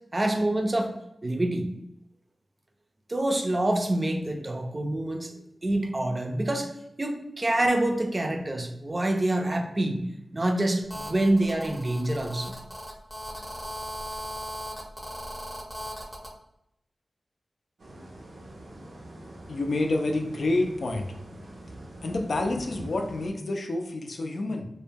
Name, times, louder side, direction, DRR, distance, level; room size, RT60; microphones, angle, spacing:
voice 1, 0.1-0.9 1.2-1.7 3.1-5.3 5.6-6.7 7.0-10.0 10.3-12.6, right 1 dB, 40° right, 4 dB, 0.4 m, -26 dB
Telephone, 10.9-16.3, equal, 10° left, 0.6 m, -38 dB
sound 1, 17.8-23.3, right 1 dB, 85° right, 0.6 m, -44 dB
voice 2, 19.5-21.1 22.0-24.7, left 2 dB, 75° left, 3 dB, 0.3 m, -28 dB
2.2 x 2.1 x 3.3 m, 0.79 s
cardioid pair, 55°, 0 cm